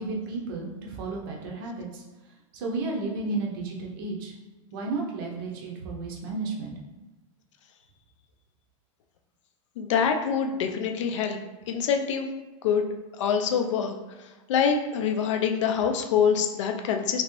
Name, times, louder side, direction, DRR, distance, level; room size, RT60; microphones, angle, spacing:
voice 1, 0.0-2.0 2.5-4.3 4.7-6.7, right 3 dB, 40° right, -1 dB, 0.6 m, -32 dB
voice 2, 9.8-11.4 11.7-12.3 12.6-12.9 13.1-13.9 14.5-17.2, left 7 dB, 60° left, 5 dB, 0.4 m, -25 dB
3.4 x 3.0 x 3.0 m, 1.1 s
supercardioid pair, 180°, 17 cm